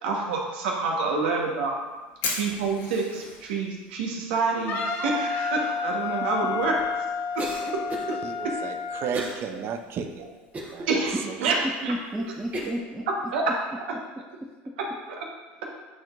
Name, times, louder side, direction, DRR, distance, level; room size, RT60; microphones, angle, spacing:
voice 1, 0.0-1.7 2.4-6.7 7.3-7.4 7.7-7.8 8.4-8.5 10.9-11.5 11.8-11.9 13.3-13.4 13.7-13.8, right 4 dB, 80° right, 1.3 m, -27 dB
Fire, 1.2-12.7, left 3 dB, 70° left, 1.8 m, -43 dB
Wind instrument woodwind instrument, 4.7-9.1, left 5 dB, 55° left, 1.5 m, -30 dB
Cough, 7.4-8.2 9.1-9.5 9.9-10.0 10.5-11.2 11.8-11.9 12.5-12.9, right 1 dB, 30° right, 1.1 m, -34 dB
voice 2, 8.2-10.3 10.7-10.9 11.3-11.6, right 6 dB, 50° right, 0.7 m, -34 dB
voice 3, 11.6-13.0 14.4-14.7, equal, 5° right, 0.6 m, -32 dB
9.0 x 4.4 x 2.6 m
hypercardioid pair, 90°, 6 cm